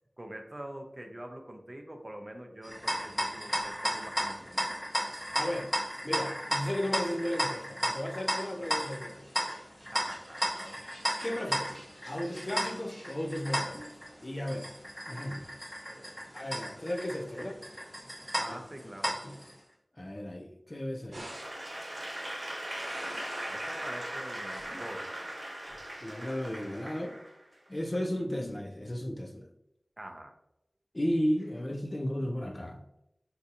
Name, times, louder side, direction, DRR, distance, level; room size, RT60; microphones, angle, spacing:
voice 1, 0.2-4.7 9.9-10.8 15.9-16.3 17.3-17.5 18.4-19.2 23.5-25.3 30.0-30.3, right 1 dB, 30° right, 0.5 m, -45 dB
sound 1, 2.6-19.5, equal, 5° left, 0.9 m, -34 dB
voice 2, 5.3-5.7 6.0-9.3 11.2-11.7 12.1-14.0 14.2-14.7 15.1-15.5 16.3-17.5 18.5-18.6 19.2-19.4 20.0-21.2 26.0-27.2 27.7-29.5 30.9-32.8, equal, 35° left, 0.4 m, -34 dB
sound 2, 21.1-21.7 22.4-23.7 24.2-24.9 25.7-26.1, right 1 dB, 70° right, 0.9 m, -46 dB
Applause / Crowd, 21.3-27.7, right 1 dB, 55° right, 1.2 m, -39 dB
3.8 x 2.7 x 2.4 m
wide cardioid pair, 65°, 0 cm